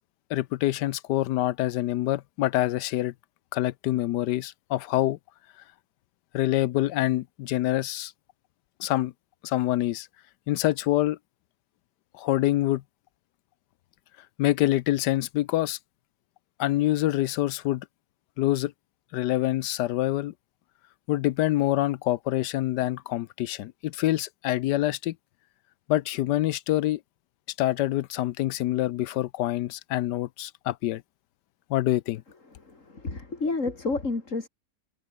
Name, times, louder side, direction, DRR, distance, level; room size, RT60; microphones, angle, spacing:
voice 1, 0.3-3.1 3.5-5.2 6.3-8.1 8.8-9.1 9.4-10.1 10.5-11.2 12.2-12.8 14.4-15.8 16.6-17.8 18.4-18.7 19.1-20.3 21.1-25.1 25.9-27.0 27.6-31.0 31.7-32.2, left 15 dB, 80° left, 1.2 m, -26 dB
voice 2, 32.4-34.5, left 3 dB, 45° left, 3.6 m, -30 dB
omnidirectional pair, 1.8 m